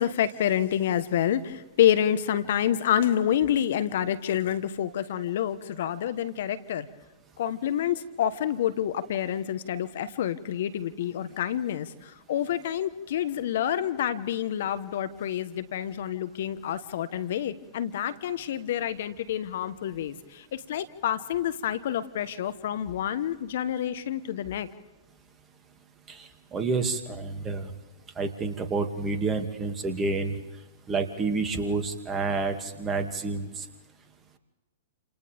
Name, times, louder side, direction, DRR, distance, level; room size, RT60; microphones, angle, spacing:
voice 1, 0.0-6.9 7.4-24.7, left 10 dB, 60° left, 12 dB, 1.2 m, -28 dB
voice 2, 26.1-27.7 28.2-30.3 30.9-33.6, right 4 dB, 20° right, 5 dB, 2.4 m, -29 dB
29.0 x 28.5 x 3.6 m, 1.1 s
hypercardioid pair, 115°, 0 cm